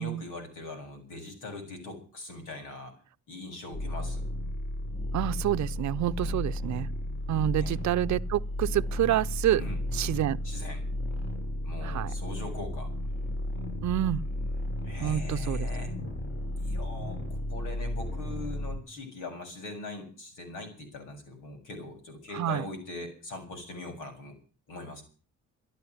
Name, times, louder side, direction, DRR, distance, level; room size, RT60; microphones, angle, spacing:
voice 1, 0.0-2.9 3.3-4.2 6.2-6.4 7.5-7.7 9.5-9.8 10.4-10.8 11.6-12.9 14.8-15.9 16.6-17.2 17.5-24.4 24.7-25.0, left 2 dB, 85° left, 7.5 m, -41 dB
sound 1, 3.7-18.8, left 1 dB, 40° left, 7.5 m, -33 dB
voice 2, 5.1-6.9 7.3-9.6 9.9-10.4 11.8-12.1 13.8-14.2 15.0-15.7 22.3-22.7, right 12 dB, 65° right, 0.7 m, -28 dB
14.0 x 10.5 x 9.5 m
cardioid pair, 90°, 30 cm